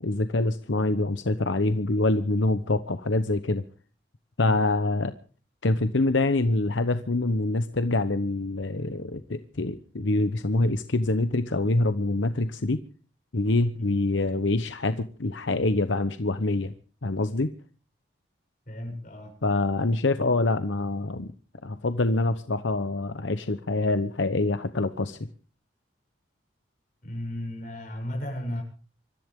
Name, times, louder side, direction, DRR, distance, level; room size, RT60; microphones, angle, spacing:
voice 1, 0.0-3.6 4.4-5.1 5.6-12.8 13.3-16.7 17.0-17.5 19.4-21.3 21.6-25.3, left 2 dB, 80° left, 1.0 m, -25 dB
voice 2, 18.7-19.4 27.0-28.6, left 1 dB, 45° left, 7.8 m, -34 dB
25.5 x 14.0 x 3.7 m
head